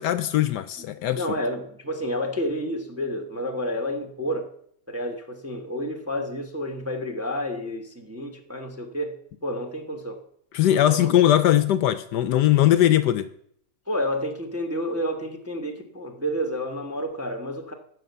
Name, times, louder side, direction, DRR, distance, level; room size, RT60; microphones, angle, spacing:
voice 1, 0.0-1.2 10.5-13.3, left 12 dB, 75° left, 1.1 m, -20 dB
voice 2, 1.2-4.5 4.9-10.2 10.9-11.1 13.9-17.7, equal, 10° right, 0.8 m, -30 dB
11.0 x 6.4 x 8.1 m
omnidirectional pair, 2.0 m